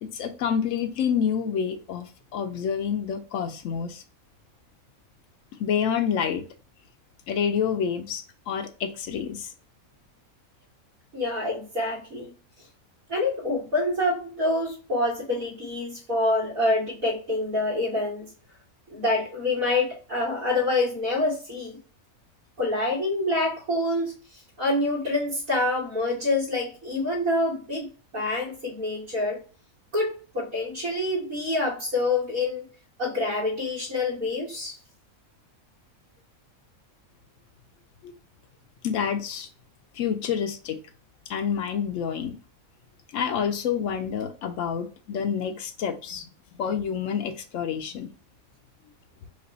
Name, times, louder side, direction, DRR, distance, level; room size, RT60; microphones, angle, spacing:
voice 1, 0.0-4.0 5.6-6.4 7.3-9.5 38.0-38.1 38.8-39.5 39.9-40.8 41.3-42.4 43.1-46.3 46.6-48.1, left 7 dB, 70° left, 0.9 m, -28 dB
voice 2, 11.1-12.3 13.1-18.3 18.9-21.8 22.6-27.9 28.1-29.4 29.9-32.7 33.0-34.8, left 2 dB, 80° right, 2.1 m, -26 dB
5.1 x 2.5 x 4.0 m
omnidirectional pair, 1.5 m